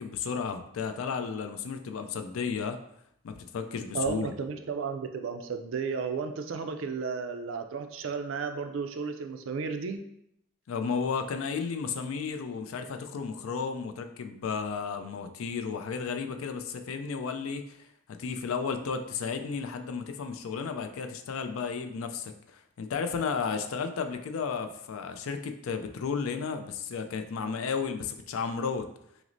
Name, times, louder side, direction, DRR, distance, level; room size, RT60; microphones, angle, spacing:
voice 1, 0.0-2.8 3.2-4.3 10.7-28.9, left 5 dB, 80° left, 7 dB, 0.4 m, -33 dB
voice 2, 3.9-10.0, right 5 dB, 70° right, 7 dB, 0.4 m, -33 dB
5.9 x 2.0 x 2.6 m, 0.77 s
head